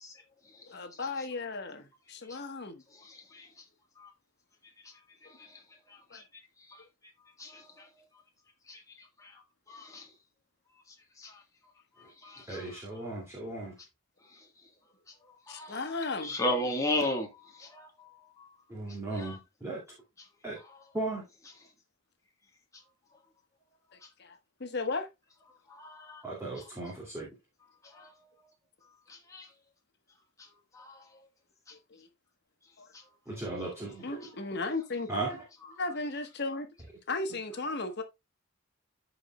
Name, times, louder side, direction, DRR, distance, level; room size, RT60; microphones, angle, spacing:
voice 1, 0.7-2.8 6.1-6.2 15.5-16.3 24.2-25.1 31.9-32.1 32.8-32.9 34.0-35.1 35.8-36.7 37.1-38.0, left 3 dB, 55° left, 1.3 m, -35 dB
voice 2, 9.7-10.0 11.2-11.3 12.2-12.6 15.5-15.8 16.2-17.3 17.6-17.9 19.2-19.3 25.7-26.2 27.9-28.1 29.3-29.5 30.7-30.9, left 1 dB, 15° left, 1.5 m, -33 dB
voice 3, 12.5-13.7 18.7-19.8 20.4-20.6 20.9-21.2 26.2-27.3 33.3-34.0 35.1-35.4, right 2 dB, 15° right, 2.4 m, -36 dB
14.0 x 4.8 x 2.3 m
head